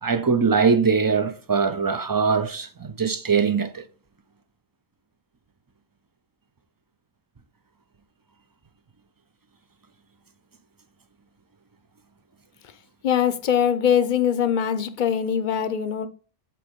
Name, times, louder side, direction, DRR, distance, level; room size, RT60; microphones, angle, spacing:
voice 1, 0.0-3.8, right 5 dB, 35° right, 0.3 m, -22 dB
voice 2, 13.0-16.1, left 8 dB, 55° left, 0.7 m, -22 dB
7.7 x 3.0 x 5.1 m
omnidirectional pair, 1.1 m